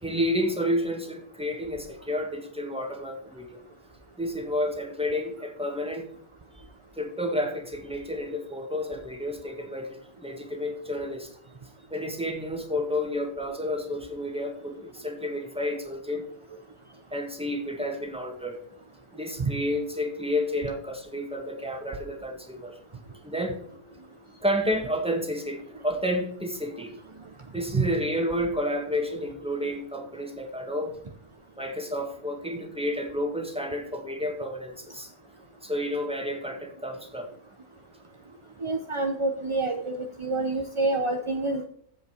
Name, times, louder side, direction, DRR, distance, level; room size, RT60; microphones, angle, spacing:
voice 1, 0.0-3.6 4.2-6.1 7.0-11.3 11.9-16.2 17.1-18.6 19.1-22.8 23.2-23.6 24.4-26.9 27.5-30.9 31.6-35.1 35.6-37.3, left 1 dB, 5° right, 3 dB, 1.7 m, -30 dB
voice 2, 38.6-41.6, right 3 dB, 30° right, 5 dB, 0.6 m, -27 dB
15.0 x 5.4 x 5.1 m, 0.64 s
omnidirectional pair, 1.5 m